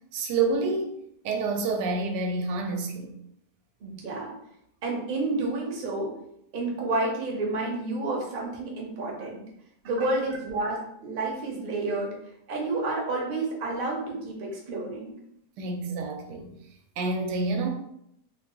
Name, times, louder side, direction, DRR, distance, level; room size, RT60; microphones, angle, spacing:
voice 1, 0.1-0.9 1.2-3.1 10.0-10.1 15.6-16.5 17.0-17.7, right 3 dB, 90° right, 3 dB, 1.2 m, -28 dB
voice 2, 3.8-4.3 4.8-6.1 6.5-9.4 9.8-12.1 12.5-15.1, right 2 dB, 45° right, -1 dB, 0.7 m, -30 dB
2.9 x 2.3 x 3.6 m, 0.75 s
omnidirectional pair, 1.7 m